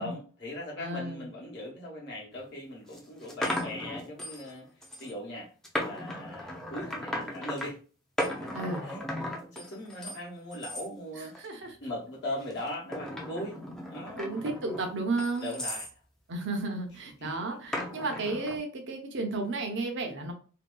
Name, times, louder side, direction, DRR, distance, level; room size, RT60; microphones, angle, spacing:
voice 1, 0.0-4.7 5.0-5.5 5.8-7.8 8.2-13.6 13.9-14.3 15.4-15.9 17.2-17.3, left 1 dB, 55° left, -4 dB, 0.9 m, -39 dB
voice 2, 0.8-1.3 8.5-8.9 11.4-11.8 14.2-15.5 16.3-20.3, right 2 dB, 60° right, 4 dB, 0.6 m, -33 dB
sound 1, 2.3-2.4 2.9-4.5 4.8-5.1 5.6-7.7 8.2-10.2 10.5-10.9 11.3-11.7 12.5-15.9 17.7-18.6, left 1 dB, ahead, 0.5 m, -36 dB
2.7 x 2.2 x 2.2 m, 0.38 s
head